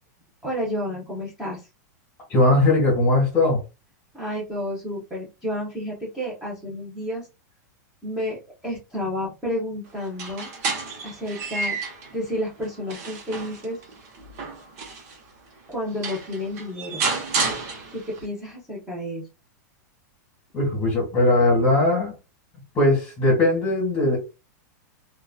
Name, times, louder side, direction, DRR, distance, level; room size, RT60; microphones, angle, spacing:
voice 1, 0.4-1.7 4.1-7.3 8.0-10.5 11.0-11.7 12.1-13.8 14.9-15.0 15.7-17.0 17.9-19.2, left 1 dB, 5° right, 1.1 m, -31 dB
voice 2, 2.3-3.6 20.5-22.1 22.7-24.2, left 2 dB, 20° left, 1.5 m, -19 dB
sound 1, 10.0-12.1 12.6-15.2 15.7-15.8 16.0-18.2, right 4 dB, 55° right, 1.1 m, -30 dB
3.0 x 2.5 x 2.3 m
supercardioid pair, 150°, 10 cm